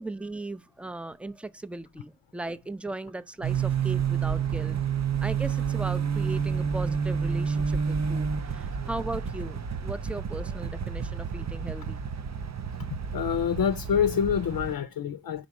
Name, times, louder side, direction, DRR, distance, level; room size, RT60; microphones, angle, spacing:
voice 1, 0.0-4.8 5.2-12.0, right 2 dB, 5° right, 0.4 m, -37 dB
sound 1, 3.4-14.7, right 6 dB, 50° right, 0.5 m, -29 dB
voice 2, 12.8-15.5, left 8 dB, 75° left, 0.5 m, -27 dB
5.2 x 4.1 x 4.7 m
wide cardioid pair, 70°, 34 cm